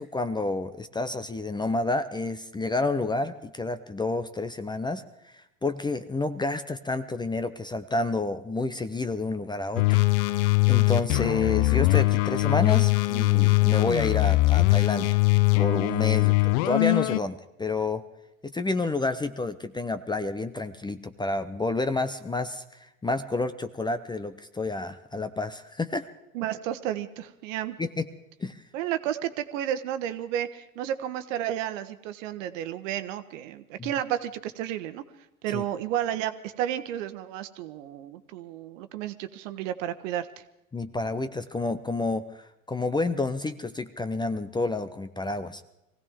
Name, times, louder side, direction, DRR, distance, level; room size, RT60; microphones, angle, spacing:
voice 1, 0.0-5.0 5.6-10.0 10.4-15.2 15.6-18.0 18.4-26.1 27.8-28.1 28.4-28.6 33.8-33.9 35.5-35.6 40.7-42.2 42.7-45.6, left 3 dB, 10° left, 12 dB, 0.7 m, -29 dB
sound 1, 9.8-17.2, left 22 dB, 55° left, 0.5 m, -22 dB
voice 2, 26.3-27.8 28.7-35.0 35.4-40.3, right 11 dB, 60° right, 10 dB, 1.3 m, -32 dB
23.5 x 16.5 x 3.6 m, 0.88 s
hypercardioid pair, 85°, 42 cm